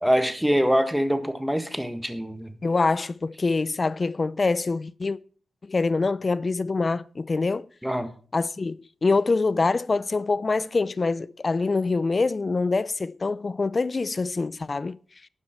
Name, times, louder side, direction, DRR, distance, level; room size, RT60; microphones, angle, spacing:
voice 1, 0.0-2.5 7.8-8.1, equal, 5° right, 1.7 m, -24 dB
voice 2, 2.6-5.2 5.6-7.7 8.3-15.0, left 3 dB, 40° left, 0.5 m, -25 dB
12.0 x 9.7 x 4.4 m
cardioid pair, 70°, 0 cm